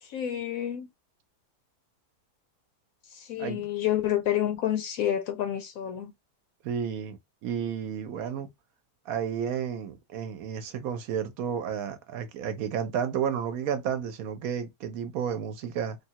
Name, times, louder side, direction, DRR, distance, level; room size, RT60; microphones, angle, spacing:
voice 1, 0.0-0.9 3.1-6.1, left 11 dB, 70° left, 0.9 m, -29 dB
voice 2, 6.6-8.5 9.1-16.0, right 8 dB, 70° right, 1.0 m, -32 dB
3.4 x 2.3 x 2.7 m
omnidirectional pair, 1.8 m